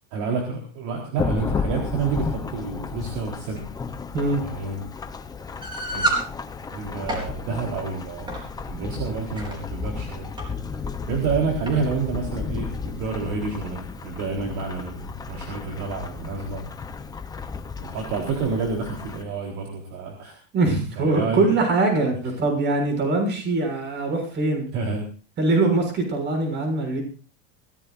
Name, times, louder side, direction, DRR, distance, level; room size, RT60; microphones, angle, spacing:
voice 1, 0.1-3.7 4.4-4.9 5.9-6.2 6.7-8.4 8.7-10.3 11.1-16.7 17.8-20.4 21.0-21.5 24.7-25.1, right 4 dB, 45° right, 0 dB, 4.1 m, -29 dB
Thunderstorm / Rain, 1.2-19.2, left 5 dB, 10° left, 0.8 m, -33 dB
sound 1, 5.6-6.3 6.9-7.3 8.3-8.5 9.2-9.5 10.4-10.5 10.8-10.9 11.7-11.8, right 2 dB, 10° right, 4.6 m, -27 dB
voice 2, 20.5-24.7 25.4-27.0, right 2 dB, 30° right, 4 dB, 7.0 m, -22 dB
23.5 x 16.5 x 2.6 m, 0.37 s
supercardioid pair, 150°, 38 cm